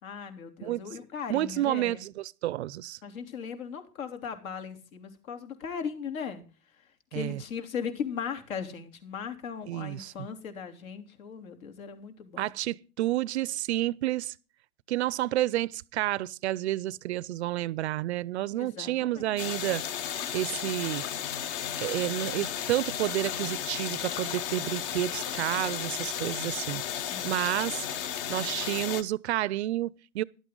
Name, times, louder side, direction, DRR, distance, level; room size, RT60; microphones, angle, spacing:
voice 1, 0.0-2.0 3.0-6.4 7.1-12.5 18.5-19.4 26.9-27.5, left 7 dB, 65° left, 3.5 m, -38 dB
voice 2, 1.3-3.0 7.1-7.4 9.7-10.1 12.4-14.3 14.9-19.8 20.3-21.1 21.8-26.8 27.2-27.8 28.3-30.2, right 15 dB, 50° right, 0.5 m, -30 dB
sound 1, 19.4-29.0, left 9 dB, 40° left, 1.0 m, -34 dB
14.5 x 11.5 x 3.8 m
hypercardioid pair, 140°, 44 cm